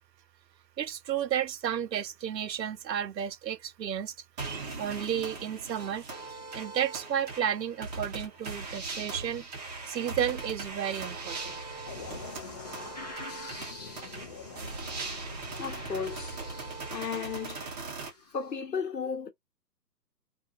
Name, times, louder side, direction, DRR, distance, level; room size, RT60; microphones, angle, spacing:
voice 1, 0.8-4.1 4.8-6.0 6.3-9.5 9.9-11.5, right 9 dB, 85° right, 0.6 m, -32 dB
sound 1, 4.4-18.1, right 3 dB, 25° right, 0.8 m, -40 dB
sound 2, 11.9-18.4, left 3 dB, 25° left, 0.7 m, -45 dB
voice 2, 15.6-16.4 16.9-17.7 18.3-19.3, left 6 dB, 80° left, 1.1 m, -35 dB
2.6 x 2.5 x 2.5 m
figure-of-eight pair, 145°, 49 cm